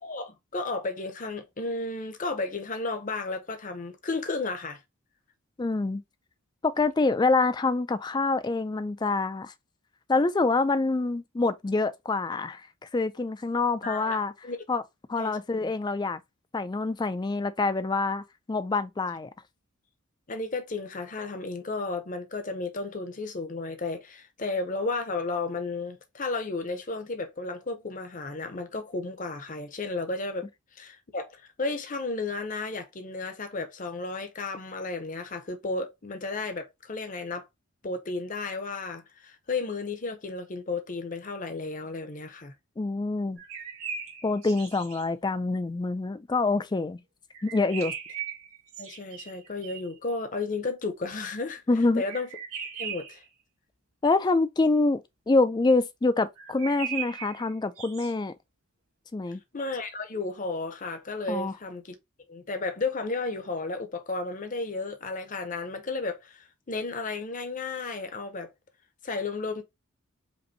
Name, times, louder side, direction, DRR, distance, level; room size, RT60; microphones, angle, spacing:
voice 1, 0.0-4.8 13.8-14.2 14.4-14.6 15.2-15.7 20.3-30.5 30.8-37.5 37.8-42.5 48.8-51.6 51.9-52.3 52.8-53.2 59.5-62.0 62.3-68.5 69.0-69.6, left 3 dB, 35° left, 0.7 m, -33 dB
voice 2, 5.6-6.0 6.6-9.5 10.1-12.7 12.9-14.3 14.7-14.8 15.1-16.2 16.5-19.3 42.8-43.4 44.2-47.0 47.4-47.9 51.7-52.0 54.0-55.0 55.3-58.3 59.1-59.4 61.3-61.5, left 3 dB, 20° left, 0.3 m, -26 dB
sound 1, 43.4-45.0 47.3-50.0 52.0-53.2 56.4-58.1, right 7 dB, 75° right, 1.7 m, -38 dB
5.2 x 2.6 x 2.7 m
head